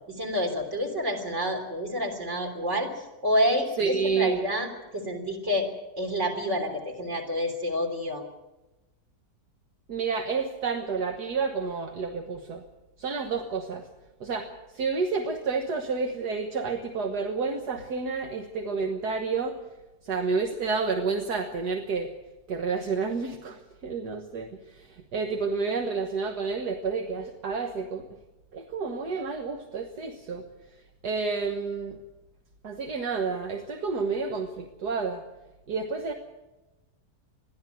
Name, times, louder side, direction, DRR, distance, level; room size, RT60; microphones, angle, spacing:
voice 1, 0.1-4.7 4.9-5.7 6.0-8.2, equal, 45° right, 3 dB, 3.8 m, -28 dB
voice 2, 3.8-4.4 9.9-12.6 13.0-13.8 14.2-14.5 14.7-19.6 20.0-22.1 22.5-28.0 28.5-30.4 31.0-32.0 32.6-35.2 35.7-36.1, right 4 dB, 70° right, 4 dB, 1.9 m, -30 dB
22.0 x 14.0 x 9.2 m, 1.0 s
omnidirectional pair, 1.8 m